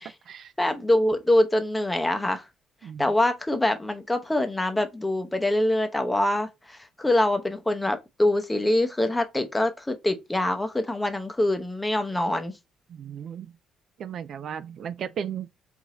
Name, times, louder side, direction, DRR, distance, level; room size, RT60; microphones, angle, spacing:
voice 1, 0.6-2.5 3.0-12.5, left 1 dB, 10° left, 0.7 m, -24 dB
voice 2, 12.9-13.5 14.0-15.5, right 8 dB, 55° right, 0.3 m, -35 dB
4.9 x 2.7 x 3.8 m
cardioid pair, 125°, 0 cm